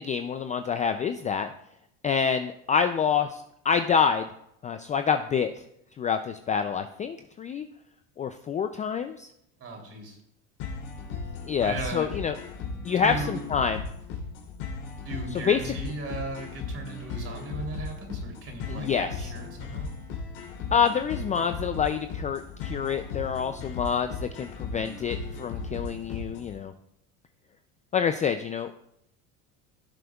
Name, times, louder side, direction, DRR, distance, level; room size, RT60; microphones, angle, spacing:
voice 1, 0.0-1.5 2.0-4.3 4.6-5.6 6.0-7.6 8.2-9.3 11.4-12.4 12.8-13.8 15.3-15.7 18.7-19.3 20.7-26.7 27.9-28.8, left 7 dB, 20° left, 8 dB, 0.3 m, -27 dB
voice 2, 9.6-10.2 11.6-12.2 13.0-13.4 15.0-19.9, right 3 dB, 40° right, 1 dB, 3.1 m, -37 dB
sound 1, 10.6-26.6, left 4 dB, 80° left, 3.0 m, -37 dB
16.0 x 7.6 x 2.3 m, 0.77 s
supercardioid pair, 110°, 37 cm